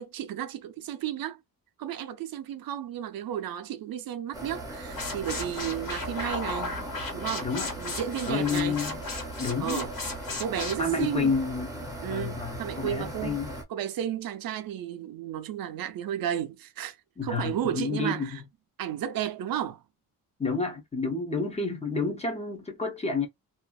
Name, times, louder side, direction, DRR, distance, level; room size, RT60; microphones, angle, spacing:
voice 1, 0.0-1.4 1.8-6.8 7.1-8.8 9.6-9.9 10.4-11.3 12.0-13.4 13.7-17.0 17.2-18.4 18.8-19.8, right 10 dB, 80° right, 0.5 m, -33 dB
sound 1, 4.3-13.6, right 1 dB, 10° right, 0.8 m, -39 dB
sound 2, 4.9-10.8, left 3 dB, 80° left, 1.6 m, -36 dB
voice 2, 7.4-7.7 8.3-9.0 9.4-9.8 10.8-13.6 17.2-18.4 20.4-23.3, left 4 dB, 20° left, 0.7 m, -30 dB
2.7 x 2.4 x 2.3 m
wide cardioid pair, 170°, 34 cm